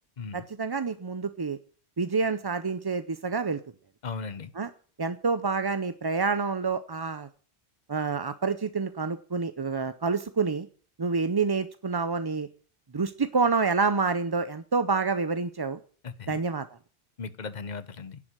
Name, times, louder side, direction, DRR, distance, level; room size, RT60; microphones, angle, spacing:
voice 1, 0.3-1.6 2.0-3.6 4.6-4.7 5.0-7.3 7.9-10.7 11.0-12.5 12.9-15.8 16.3-16.7, right 4 dB, 30° right, 12 dB, 0.4 m, -28 dB
voice 2, 4.0-4.5 16.0-16.4 17.2-18.2, left 5 dB, 45° left, 13 dB, 1.1 m, -37 dB
11.0 x 7.7 x 8.9 m, 0.42 s
omnidirectional pair, 1.1 m